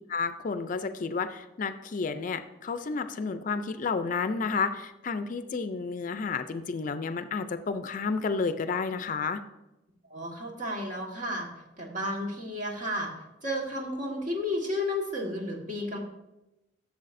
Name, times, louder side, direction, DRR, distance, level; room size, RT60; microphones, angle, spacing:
voice 1, 0.1-9.4, left 4 dB, 45° left, 11 dB, 0.4 m, -31 dB
voice 2, 10.1-11.5 11.8-13.1 13.4-16.0, left 1 dB, 45° right, -1 dB, 1.6 m, -32 dB
11.5 x 7.0 x 2.6 m, 0.96 s
head